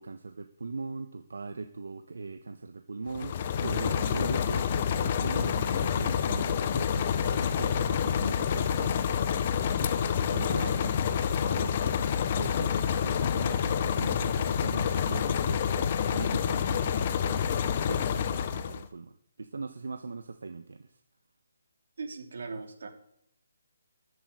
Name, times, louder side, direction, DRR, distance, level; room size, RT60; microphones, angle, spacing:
voice 1, 0.0-9.0 9.6-11.0 11.4-11.7 12.4-21.0, right 4 dB, 75° right, 7 dB, 1.1 m, -40 dB
sound 1, 3.1-18.9, left 7 dB, 30° left, 0.8 m, -28 dB
voice 2, 22.0-22.9, right 4 dB, 55° right, 4 dB, 2.9 m, -39 dB
11.5 x 7.9 x 9.9 m, 0.73 s
hypercardioid pair, 170°, 0 cm